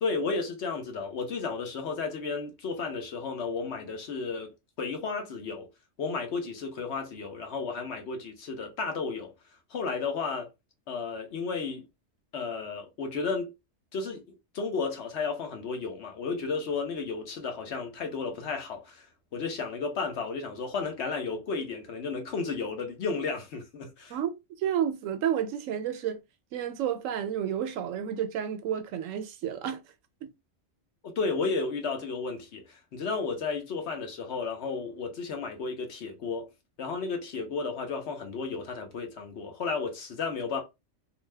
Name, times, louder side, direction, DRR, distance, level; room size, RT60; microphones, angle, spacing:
voice 1, 0.0-5.7 6.0-9.3 9.7-10.5 10.9-11.9 12.3-13.5 13.9-14.2 14.5-19.1 19.3-24.2 31.0-36.5 36.8-40.6, left 4 dB, 60° left, 1.0 m, -33 dB
voice 2, 24.6-26.2 26.5-29.8, right 9 dB, 80° right, 0.9 m, -30 dB
2.8 x 2.1 x 3.2 m
omnidirectional pair, 1.3 m